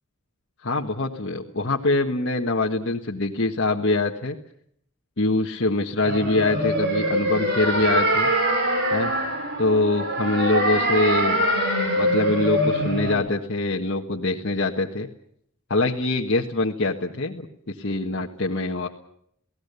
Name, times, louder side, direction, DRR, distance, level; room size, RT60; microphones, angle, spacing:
voice 1, 0.6-4.4 5.2-8.3 8.9-9.1 9.6-11.4 12.0-15.1 15.7-18.9, left 2 dB, 60° left, -1 dB, 1.5 m, -24 dB
sound 1, 6.0-13.1, equal, 50° right, 6.9 m, -23 dB
28.5 x 18.0 x 6.9 m, 0.70 s
head